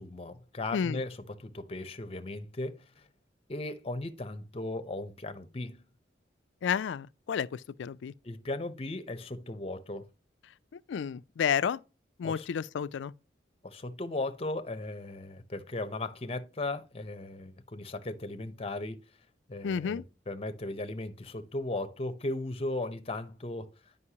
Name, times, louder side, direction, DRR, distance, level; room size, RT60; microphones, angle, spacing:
voice 1, 0.0-3.1 3.5-5.8 8.2-10.1 12.2-12.5 13.6-19.0 19.5-23.7, left 2 dB, 35° left, 0.7 m, -37 dB
voice 2, 6.6-8.1 10.9-11.8 12.2-13.1 19.6-20.0, left 7 dB, 85° left, 0.4 m, -31 dB
9.7 x 5.3 x 2.8 m
head